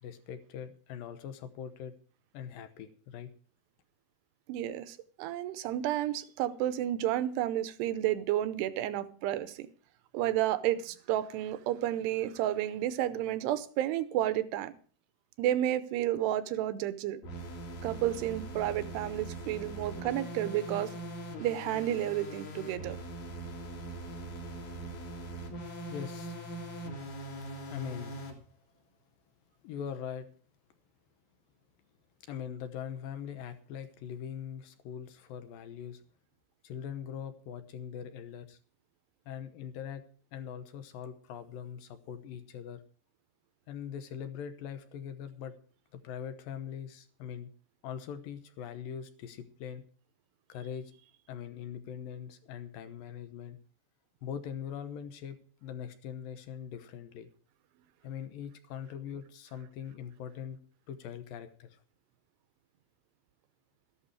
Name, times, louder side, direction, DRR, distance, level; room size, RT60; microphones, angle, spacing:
voice 1, 0.0-1.9 2.3-3.3 25.9-26.3 27.7-28.2 29.6-30.3 32.2-36.0 36.6-38.6 39.3-40.1 40.3-42.8 43.7-45.6 45.9-47.5 47.8-49.8 50.5-50.9 51.3-53.6 54.2-57.3 58.0-60.6 60.9-61.8, left 8 dB, 75° left, 2.3 m, -42 dB
voice 2, 4.5-9.7 10.1-14.7 15.4-17.2 17.8-20.9 21.4-23.0, right 12 dB, 85° right, 2.9 m, -31 dB
sound 1, 17.2-28.4, right 1 dB, 55° left, 4.5 m, -41 dB
14.0 x 11.5 x 4.8 m
omnidirectional pair, 4.9 m